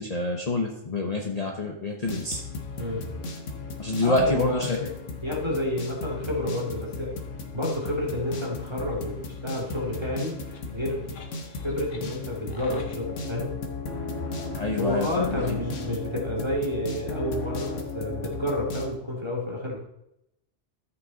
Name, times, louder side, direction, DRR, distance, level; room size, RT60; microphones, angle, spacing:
voice 1, 0.0-2.4 3.8-4.9 14.5-15.6, left 2 dB, 35° left, 1 dB, 1.0 m, -27 dB
sound 1, 2.0-18.9, left 3 dB, 85° left, 1.5 m, -35 dB
voice 2, 4.0-4.9 5.2-7.1 7.5-13.5 14.8-19.8, left 1 dB, 20° right, -2 dB, 2.3 m, -30 dB
13.5 x 5.9 x 4.0 m, 0.83 s
omnidirectional pair, 1.2 m